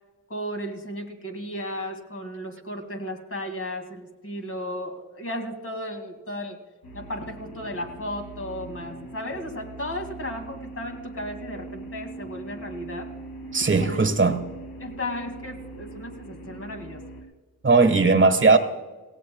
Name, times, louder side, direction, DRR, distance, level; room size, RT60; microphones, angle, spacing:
voice 1, 0.3-6.6 6.9-13.1 13.7-14.0 14.8-17.0, left 1 dB, 40° left, 4 dB, 2.4 m, -35 dB
sound 1, 6.8-17.2, right 2 dB, 80° left, 2.1 m, -41 dB
voice 2, 13.5-14.4 17.6-18.6, right 4 dB, 30° right, 8 dB, 1.4 m, -18 dB
18.0 x 16.5 x 2.3 m, 1.3 s
wide cardioid pair, 90°, 36 cm